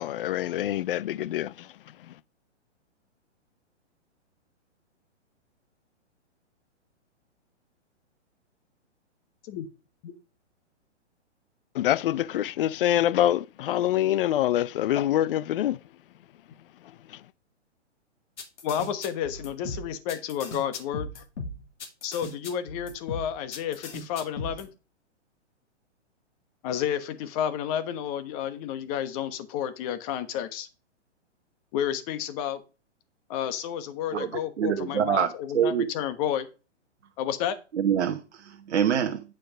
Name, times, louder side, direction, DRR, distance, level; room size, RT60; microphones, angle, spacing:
voice 1, 0.0-1.5 11.7-15.8, left 12 dB, 50° left, 0.5 m, -25 dB
sound 1, 18.4-24.6, left 2 dB, 75° left, 2.5 m, -37 dB
voice 2, 18.6-21.2 22.0-24.7 26.6-30.7 31.7-32.6 33.3-36.5 37.2-37.6, left 9 dB, 30° left, 1.2 m, -31 dB
voice 3, 34.6-35.9 37.7-39.2, right 9 dB, 75° right, 1.2 m, -25 dB
9.2 x 5.2 x 5.0 m
hypercardioid pair, 140°, 36 cm